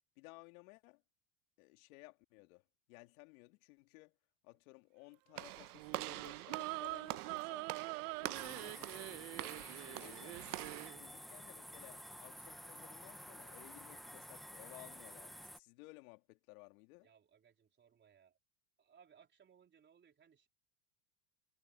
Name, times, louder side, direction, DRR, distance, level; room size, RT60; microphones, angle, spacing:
voice 1, 0.2-1.0 1.6-4.2 4.4-7.7 8.1-10.4 10.9-17.1, left 24 dB, 70° left, 2.9 m, -58 dB
Walk footsteps / Slam, 5.4-10.9, right 16 dB, 85° right, 1.0 m, -46 dB
sound 1, 5.7-11.0, right 26 dB, 60° right, 1.0 m, -45 dB
sound 2, 8.3-15.6, equal, ahead, 1.1 m, -52 dB
voice 2, 17.0-18.4 18.8-20.5, right 7 dB, 25° right, 4.0 m, -66 dB
supercardioid pair, 115°, 44 cm